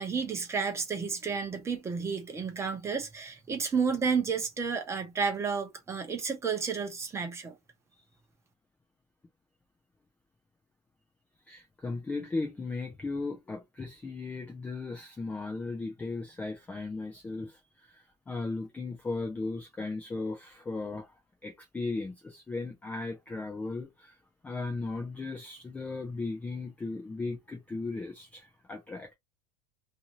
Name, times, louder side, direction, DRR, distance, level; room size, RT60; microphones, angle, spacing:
voice 1, 0.0-7.6, right 5 dB, 15° right, 0.8 m, -31 dB
voice 2, 11.5-21.1 21.4-24.2 24.4-29.1, left 3 dB, 10° left, 0.4 m, -36 dB
2.7 x 2.6 x 2.9 m
supercardioid pair, 150°, 20 cm